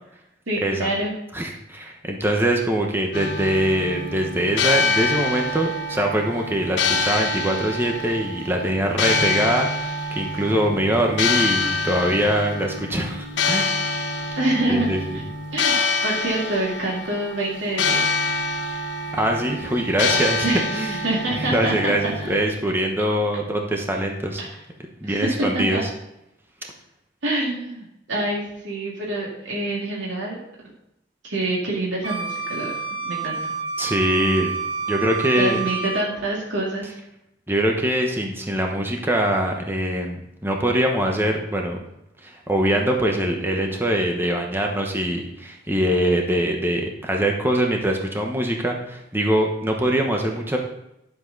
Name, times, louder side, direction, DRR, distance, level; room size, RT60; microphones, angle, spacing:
voice 1, 0.5-1.1 14.4-15.8 16.0-18.0 20.4-20.6 21.0-22.4 24.4-24.6 25.0-25.8 27.2-30.4 31.2-32.7 33.0-33.5 35.4-36.9, right 1 dB, 90° right, -3 dB, 2.3 m, -26 dB
voice 2, 1.3-13.8 14.7-15.2 19.1-21.0 21.3-24.4 25.0-25.9 33.8-34.5 34.9-35.6 37.5-41.9 42.2-50.6, right 1 dB, 10° right, 1 dB, 1.1 m, -23 dB
sound 1, 3.1-22.4, left 3 dB, 70° left, 1.1 m, -26 dB
Wind instrument woodwind instrument, 32.0-36.1, right 6 dB, 30° right, 1.3 m, -29 dB
11.0 x 7.6 x 4.0 m, 0.84 s
head